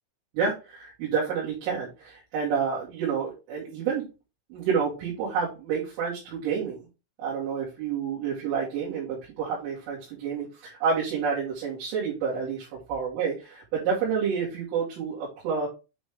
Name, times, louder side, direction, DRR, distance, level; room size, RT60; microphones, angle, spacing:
voice 1, 0.3-4.0 4.5-6.8 7.2-15.7, right 6 dB, 90° right, -7 dB, 5.0 m, -29 dB
9.1 x 3.6 x 3.4 m, 0.29 s
omnidirectional pair, 5.5 m